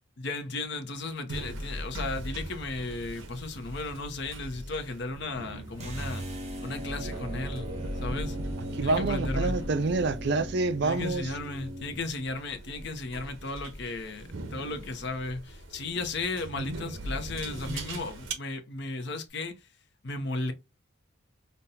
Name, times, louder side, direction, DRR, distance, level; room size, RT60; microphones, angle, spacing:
voice 1, 0.2-6.2 6.6-7.7 8.0-8.4 8.8-9.6 10.8-19.5 20.0-20.5, left 3 dB, 55° left, 0.7 m, -35 dB
sound 1, 1.3-18.3, right 1 dB, 75° right, 0.9 m, -39 dB
sound 2, 5.8-12.0, right 1 dB, 30° right, 0.9 m, -38 dB
voice 2, 8.8-11.3, right 3 dB, 55° right, 0.4 m, -27 dB
5.2 x 2.2 x 2.8 m
head